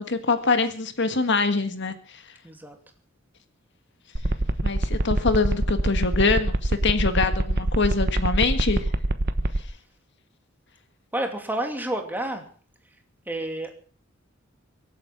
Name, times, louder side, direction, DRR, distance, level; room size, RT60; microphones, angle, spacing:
voice 1, 0.0-2.2 4.6-8.9, left 4 dB, 60° left, 8 dB, 1.7 m, -24 dB
voice 2, 2.4-2.8 11.1-12.5 13.3-13.7, right 1 dB, 10° right, 4 dB, 2.7 m, -29 dB
sound 1, 4.2-9.6, right 1 dB, 55° right, 1.2 m, -23 dB
24.0 x 8.8 x 6.1 m, 0.42 s
head